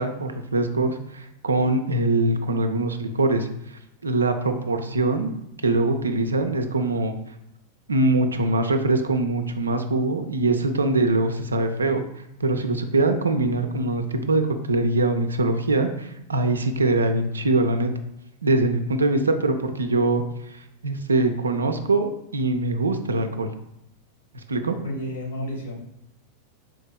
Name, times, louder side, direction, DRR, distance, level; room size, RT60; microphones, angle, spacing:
voice 1, 0.0-5.3 5.6-7.1 7.9-12.0 12.4-17.9 18.4-23.5 24.5-24.8, right 2 dB, 75° right, 7 dB, 0.3 m, -23 dB
voice 2, 24.8-25.8, equal, 60° left, 0 dB, 1.0 m, -31 dB
3.9 x 2.7 x 2.2 m, 0.82 s
figure-of-eight pair, 90°, 0 cm